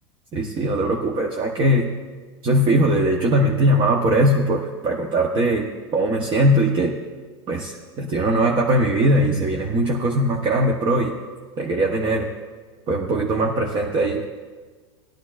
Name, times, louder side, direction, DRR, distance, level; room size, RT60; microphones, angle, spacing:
voice 1, 0.3-1.9 2.4-7.0 7.5-11.1 11.6-12.3 12.9-14.2, right 1 dB, 35° right, 1 dB, 1.0 m, -20 dB
16.0 x 11.5 x 2.5 m, 1.4 s
hypercardioid pair, 115°, 15 cm